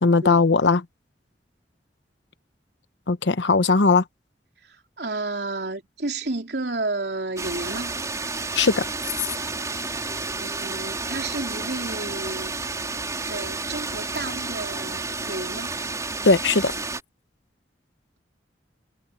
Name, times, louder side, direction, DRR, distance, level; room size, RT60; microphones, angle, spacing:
voice 1, 0.0-0.8 3.1-4.0 8.6-8.8 16.2-16.7, left 4 dB, 90° left, 0.9 m, -18 dB
voice 2, 4.6-7.9 10.4-12.5 13.2-15.7, right 2 dB, 65° right, 3.7 m, -31 dB
sound 1, 7.4-17.0, right 3 dB, 20° right, 4.4 m, -31 dB
head